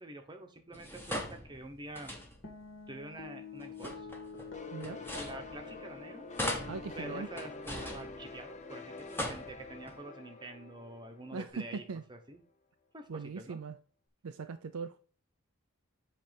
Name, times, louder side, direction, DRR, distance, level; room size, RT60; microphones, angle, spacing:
voice 1, 0.0-2.1 2.9-4.1 5.1-6.2 7.0-7.5 7.8-11.8 12.1-12.4 12.9-13.6, right 1 dB, 20° right, 1.0 m, -47 dB
sound 1, 0.7-2.6 3.6-6.0 6.3-8.6 9.0-10.0, left 1 dB, 10° left, 1.1 m, -41 dB
sound 2, 2.4-9.0, left 5 dB, 55° left, 1.8 m, -49 dB
sound 3, 4.5-12.0, left 2 dB, 30° left, 0.6 m, -47 dB
voice 2, 6.7-7.3 11.3-12.0 13.1-13.8 14.2-15.0, right 5 dB, 80° right, 0.5 m, -40 dB
7.9 x 3.3 x 5.1 m
head